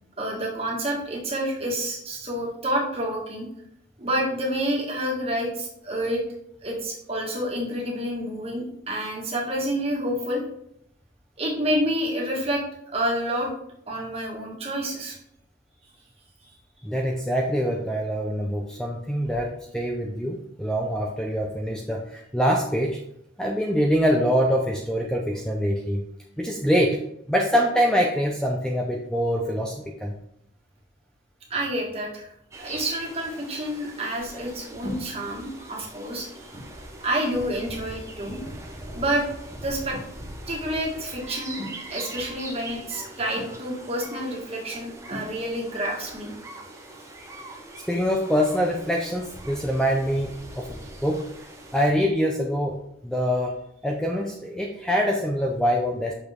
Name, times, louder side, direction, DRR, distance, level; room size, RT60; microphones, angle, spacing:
voice 1, 0.2-3.5 4.0-6.2 6.6-10.4 11.4-12.6 12.9-13.5 13.9-15.2 31.5-32.3 32.6-36.6 37.0-38.4 38.9-39.2 39.6-40.0 40.5-46.3, right 1 dB, 30° right, -2 dB, 1.6 m, -28 dB
voice 2, 16.8-23.0 23.4-26.1 26.4-27.0 27.3-30.1 47.9-51.3 51.7-53.6 53.8-56.1, equal, 5° left, 0 dB, 0.5 m, -24 dB
sound 1, 32.5-51.9, right 1 dB, 15° right, 0.8 m, -42 dB
6.2 x 5.5 x 3.5 m, 0.75 s
head